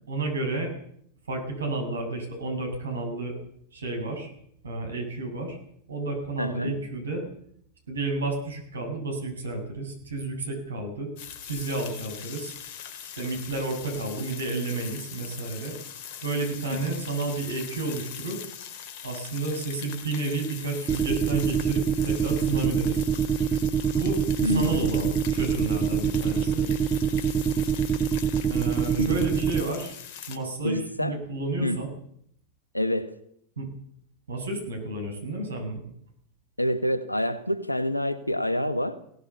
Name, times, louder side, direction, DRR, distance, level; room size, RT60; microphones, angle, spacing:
voice 1, 0.1-0.7 1.3-3.3 3.7-4.3 4.6-5.6 5.9-7.3 7.9-11.1 11.4-12.5 13.2-15.8 16.2-18.4 19.0-23.1 23.9-24.2 24.5-26.7 28.5-30.0 30.3-31.9 33.6-33.7 34.3-35.8, right 2 dB, 70° right, 4 dB, 7.5 m, -31 dB
voice 2, 6.4-6.7 16.7-17.0 24.4-25.1 29.0-29.2 30.6-31.2 31.6-31.8 32.7-33.1 36.6-39.0, equal, 85° left, 14 dB, 1.5 m, -27 dB
sound 1, 11.2-30.4, left 9 dB, 45° left, 2.6 m, -41 dB
sound 2, 20.9-29.6, right 7 dB, 20° right, 1.2 m, -24 dB
22.0 x 18.0 x 7.1 m, 0.68 s
figure-of-eight pair, 90°, 0 cm